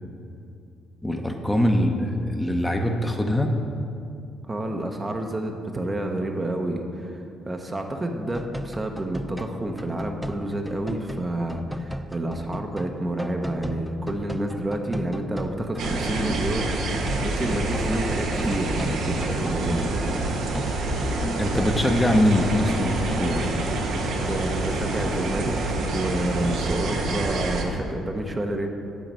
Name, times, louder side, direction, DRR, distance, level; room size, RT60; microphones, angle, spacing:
voice 1, 1.0-3.5 21.4-23.5, left 1 dB, 15° left, 3 dB, 0.9 m, -23 dB
voice 2, 4.5-19.8 24.3-25.5 25.9-28.7, right 1 dB, 25° right, 3 dB, 0.8 m, -29 dB
sound 1, 8.3-16.8 17.0-23.3, right 1 dB, 5° right, 0.5 m, -35 dB
sound 2, 15.8-27.6, right 2 dB, 75° right, 1.0 m, -27 dB
9.1 x 3.9 x 6.8 m, 2.5 s
supercardioid pair, 60°, 0 cm